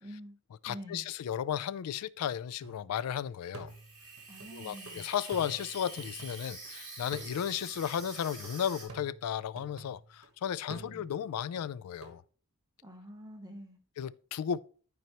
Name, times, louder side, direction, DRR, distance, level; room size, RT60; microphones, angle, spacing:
voice 1, 0.0-0.3 0.7-1.1 4.3-5.1 10.7-11.1 12.8-13.8, equal, 15° right, 0.8 m, -47 dB
voice 2, 0.6-3.7 4.5-12.2 14.0-14.6, left 9 dB, 85° left, 0.3 m, -34 dB
sound 1, 2.6-3.1 3.5-6.7 7.1-10.3 10.7-12.2, right 3 dB, 60° right, 1.3 m, -50 dB
Water tap faucet / Sink (filling or washing), 3.7-8.8, right 3 dB, 35° right, 4.0 m, -46 dB
12.0 x 4.5 x 2.9 m
head